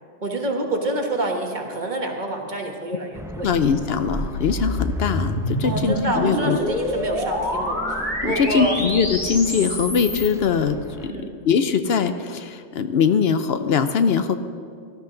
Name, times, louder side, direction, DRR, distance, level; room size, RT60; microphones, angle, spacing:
voice 1, 0.2-3.5 5.6-8.7 11.0-11.3, right 2 dB, 45° right, 2 dB, 1.5 m, -27 dB
sound 1, 3.1-11.1, equal, 5° right, 0.4 m, -39 dB
voice 2, 3.4-6.6 8.2-14.4, left 6 dB, 70° left, 9 dB, 0.9 m, -22 dB
sound 2, 3.6-10.3, equal, 45° left, 2.9 m, -27 dB
17.0 x 12.5 x 3.8 m, 2.2 s
omnidirectional pair, 1.1 m